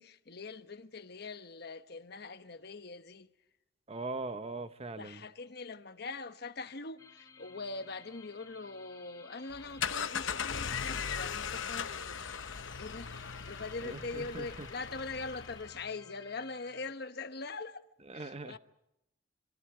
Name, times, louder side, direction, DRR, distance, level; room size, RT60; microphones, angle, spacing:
voice 1, 0.0-3.3 5.0-12.0 12.8-13.1 13.4-17.8 18.1-18.6, left 3 dB, 55° left, 1.1 m, -42 dB
voice 2, 3.9-5.2 13.8-14.7 18.1-18.6, right 3 dB, 30° right, 0.9 m, -41 dB
sound 1, 7.0-16.9, left 5 dB, 20° left, 1.2 m, -56 dB
sound 2, 9.5-15.9, left 7 dB, 85° left, 0.9 m, -38 dB
26.5 x 25.0 x 5.0 m
head